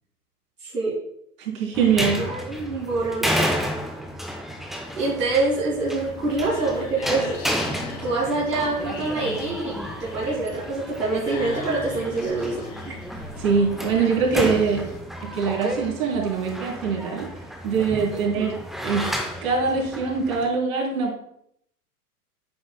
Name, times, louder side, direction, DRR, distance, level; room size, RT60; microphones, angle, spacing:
voice 1, 0.6-0.9 2.2-3.4 5.0-7.4 8.0-13.0 18.3-18.4, right 3 dB, 80° right, -4 dB, 2.3 m, -26 dB
voice 2, 1.4-2.2 13.4-14.8 15.2-17.3 17.6-19.0 19.4-21.2, right 5 dB, 60° right, -1 dB, 3.6 m, -23 dB
sound 1, 1.7-20.5, equal, ahead, 0.6 m, -32 dB
sound 2, 5.9-15.0, left 3 dB, 60° left, 3.6 m, -39 dB
10.0 x 8.3 x 2.2 m, 0.71 s
figure-of-eight pair, 105°, 47 cm